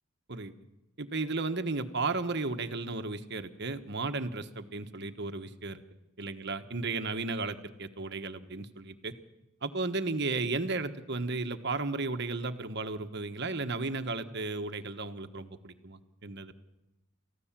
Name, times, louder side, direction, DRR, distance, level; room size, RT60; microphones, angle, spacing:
voice 1, 1.0-5.8 6.2-9.1 9.6-16.5, right 3 dB, 50° right, 8 dB, 1.3 m, -34 dB
28.5 x 15.0 x 7.5 m, 0.98 s
head